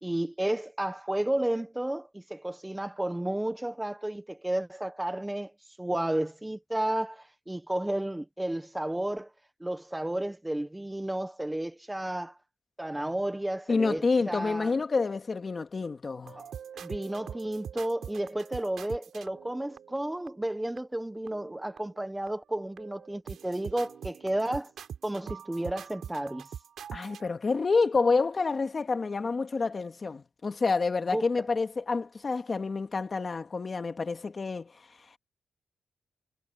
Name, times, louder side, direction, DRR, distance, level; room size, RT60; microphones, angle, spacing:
voice 1, 0.0-5.5 5.8-9.3 9.6-12.4 12.8-14.7 16.4-16.5 16.8-24.7 25.0-26.5 31.1-31.3, right 1 dB, 10° right, 1.2 m, -32 dB
voice 2, 13.7-16.4 26.9-35.2, left 4 dB, 35° left, 2.1 m, -28 dB
sound 1, 16.2-20.3 20.8-20.9 21.3-22.0 22.3-27.3, right 8 dB, 75° right, 4.2 m, -44 dB
cardioid pair, 120°, 0 cm